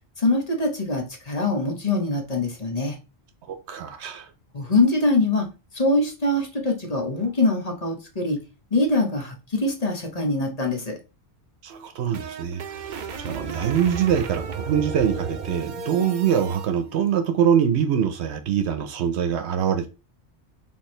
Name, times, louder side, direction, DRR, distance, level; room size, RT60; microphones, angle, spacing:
voice 1, 0.2-3.0 4.5-5.5 5.7-8.4 8.7-11.0, left 2 dB, 35° left, 1.1 m, -23 dB
voice 2, 3.4-4.3 11.6-19.9, right 8 dB, 80° right, 0.9 m, -24 dB
sound 1, 11.7-16.7, right 5 dB, 55° right, 0.6 m, -34 dB
4.5 x 3.7 x 3.2 m
omnidirectional pair, 1.2 m